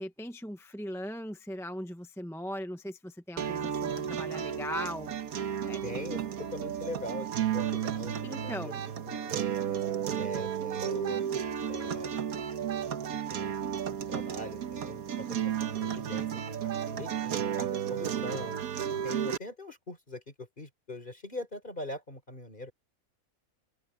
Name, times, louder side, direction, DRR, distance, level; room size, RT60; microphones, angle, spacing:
voice 1, 0.0-5.1 5.7-5.8 8.2-8.8, equal, ahead, 0.8 m, -39 dB
sound 1, 3.4-19.4, right 9 dB, 85° right, 1.5 m, -33 dB
voice 2, 5.8-9.8 10.2-11.2 11.7-12.1 13.3-13.8 14.1-16.3 16.6-18.6 19.0-22.7, left 1 dB, 35° left, 4.0 m, -42 dB
omnidirectional pair, 1.5 m